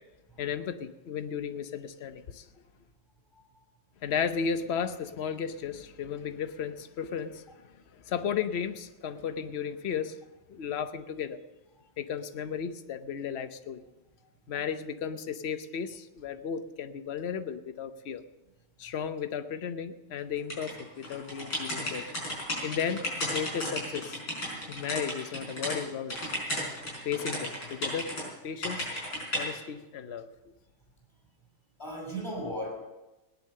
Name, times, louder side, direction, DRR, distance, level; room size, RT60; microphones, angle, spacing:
voice 1, 0.4-2.5 4.0-7.4 7.9-10.2 10.5-11.4 12.0-13.8 14.5-18.2 18.8-22.0 22.6-24.2 24.7-26.3 27.0-28.9 29.4-30.3, left 7 dB, 60° left, 10 dB, 0.6 m, -34 dB
sound 1, 20.5-25.8 26.1-28.2 28.6-29.5, left 1 dB, 80° left, 5.7 m, -34 dB
voice 2, 26.5-26.8 31.8-32.7, equal, 15° left, -2 dB, 6.4 m, -37 dB
18.5 x 10.5 x 6.6 m, 1.0 s
omnidirectional pair, 2.1 m